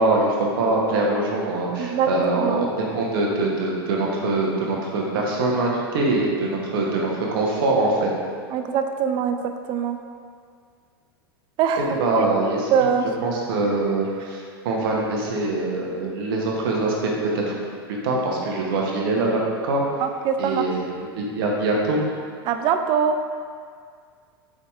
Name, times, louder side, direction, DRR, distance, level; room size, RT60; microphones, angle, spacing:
voice 1, 0.0-8.1 11.8-12.9 13.2-17.4 17.9-19.8 20.4-22.0, right 2 dB, 65° right, -2 dB, 0.9 m, -23 dB
voice 2, 8.5-9.4 9.7-10.0 11.6-12.3 12.7-13.1 20.0-20.6 22.5-23.2, right 7 dB, 40° right, 7 dB, 0.3 m, -22 dB
4.9 x 4.1 x 2.4 m, 2.1 s
hypercardioid pair, 95°, 13 cm